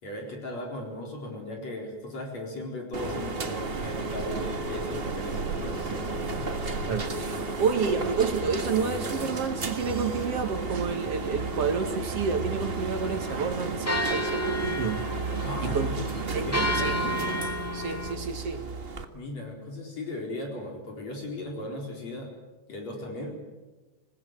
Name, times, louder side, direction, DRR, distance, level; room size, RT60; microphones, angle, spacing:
voice 1, 0.0-6.5 15.4-16.1 16.5-17.2 19.1-22.3 22.7-23.4, left 1 dB, 55° left, 1 dB, 5.4 m, -37 dB
sound 1, 2.9-19.0, right 3 dB, 35° right, 0.9 m, -33 dB
sound 2, 3.6-16.9, right 6 dB, 75° right, 3.3 m, -42 dB
voice 2, 6.9-15.1 15.6-15.9 16.3-16.9 17.7-18.7, right 5 dB, 55° right, 6 dB, 2.5 m, -29 dB
sound 3, 13.0-18.1, equal, 10° left, 0.7 m, -32 dB
26.5 x 19.5 x 9.3 m, 1.2 s
omnidirectional pair, 3.7 m